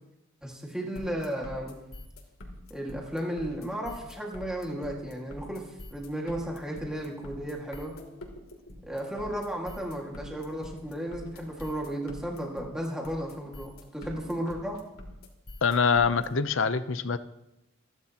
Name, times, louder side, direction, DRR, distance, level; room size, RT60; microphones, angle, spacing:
voice 1, 0.4-1.8 2.7-7.9 8.9-14.8, equal, 5° right, 1.9 m, -34 dB
sound 1, 1.0-16.3, left 1 dB, 85° left, 2.9 m, -45 dB
voice 2, 15.6-17.2, left 5 dB, 65° left, 0.7 m, -24 dB
27.5 x 11.5 x 2.9 m
head